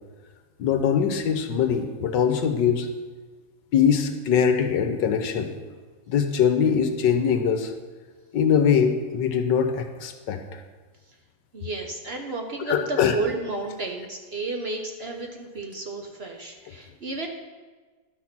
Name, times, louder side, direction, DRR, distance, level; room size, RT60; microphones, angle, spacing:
voice 1, 0.6-2.9 3.7-5.5 6.1-7.7 8.3-10.4 12.7-13.2, left 7 dB, 70° left, 7 dB, 1.4 m, -22 dB
voice 2, 11.5-17.3, right 3 dB, 45° right, 2 dB, 0.9 m, -32 dB
11.0 x 6.4 x 6.0 m, 1.4 s
omnidirectional pair, 2.1 m